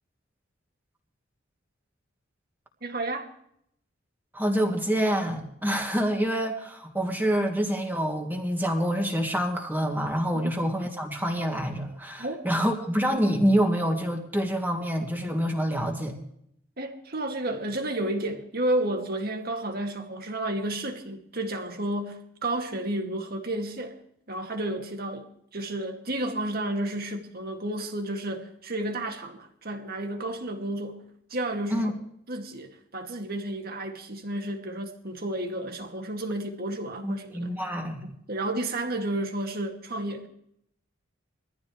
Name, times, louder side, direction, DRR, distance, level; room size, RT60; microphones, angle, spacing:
voice 1, 2.8-3.3 10.3-10.5 12.2-12.4 16.8-24.0 24.3-31.0 31.3-31.9 32.3-37.5 38.0-40.3, right 1 dB, 50° right, 4 dB, 2.3 m, -31 dB
voice 2, 4.3-16.2 31.7-31.9 37.0-38.1, equal, 10° right, 1 dB, 2.6 m, -27 dB
22.0 x 14.5 x 3.3 m, 0.71 s
head